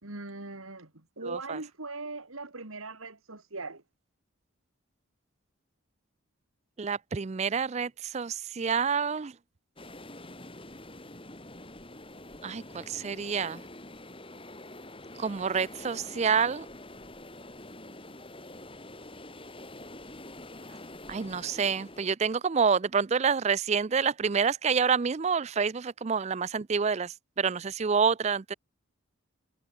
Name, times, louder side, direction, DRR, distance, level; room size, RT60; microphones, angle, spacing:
voice 1, 0.0-3.8, right 3 dB, 80° right, 3.0 m, -40 dB
voice 2, 1.2-1.6 6.8-9.3 12.4-13.6 15.2-16.7 21.1-28.5, right 6 dB, 30° right, 0.4 m, -28 dB
sound 1, 9.8-22.1, left 1 dB, 25° left, 6.3 m, -46 dB
head